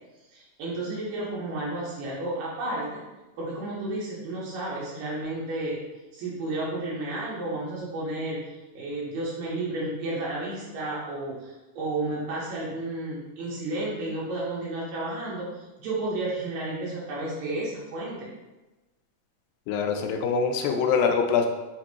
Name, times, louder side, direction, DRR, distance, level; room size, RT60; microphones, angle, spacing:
voice 1, 0.3-3.0 3.4-5.8 6.1-8.4 8.7-15.5 15.8-18.3, right 2 dB, 80° right, -6 dB, 2.5 m, -32 dB
voice 2, 19.7-21.5, left 6 dB, 85° left, 4 dB, 2.3 m, -24 dB
5.9 x 2.6 x 2.9 m, 1.1 s
omnidirectional pair, 4.0 m